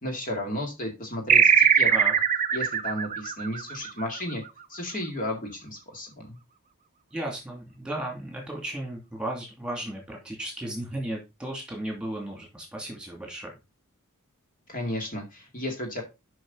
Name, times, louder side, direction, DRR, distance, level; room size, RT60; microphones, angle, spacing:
voice 1, 0.0-1.9 2.5-4.4 4.7-6.4 14.7-16.0, left 1 dB, 35° left, 1 dB, 2.1 m, -33 dB
sound 1, 1.3-4.3, right 7 dB, 35° right, 0.6 m, -21 dB
voice 2, 7.1-13.5, right 1 dB, 5° right, 1 dB, 2.6 m, -35 dB
7.7 x 5.6 x 4.0 m, 0.24 s
head